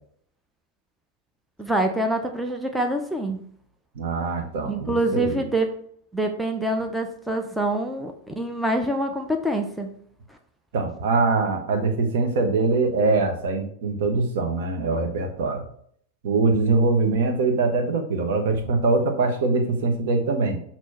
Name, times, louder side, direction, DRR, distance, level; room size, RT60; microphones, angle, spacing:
voice 1, 1.6-3.4 4.7-5.7 6.1-9.9, right 1 dB, 5° right, 3 dB, 0.6 m, -25 dB
voice 2, 3.9-5.4 10.7-15.6 16.2-20.6, right 3 dB, 55° right, 3 dB, 1.1 m, -23 dB
6.3 x 3.0 x 5.5 m, 0.63 s
figure-of-eight pair, 90°, 0 cm